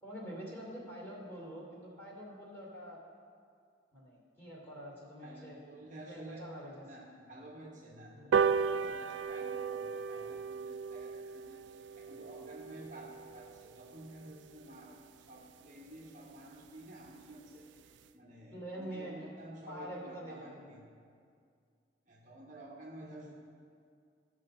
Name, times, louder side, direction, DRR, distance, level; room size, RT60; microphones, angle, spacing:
voice 1, 0.0-3.0 3.9-5.6 6.1-6.9 8.1-8.4 18.5-19.1 19.7-20.8 23.0-23.3, right 1 dB, 15° left, -4 dB, 2.8 m, -46 dB
voice 2, 5.2-6.6 6.9-20.9 22.1-23.3, right 1 dB, 45° right, -2 dB, 1.1 m, -51 dB
sound 1, 8.3-15.1 15.5-15.6 15.9-16.0 16.3-16.4 16.7-16.8 17.1-17.3 17.8-17.9, right 6 dB, 85° right, 0.3 m, -35 dB
14.0 x 6.6 x 4.3 m, 2.2 s
head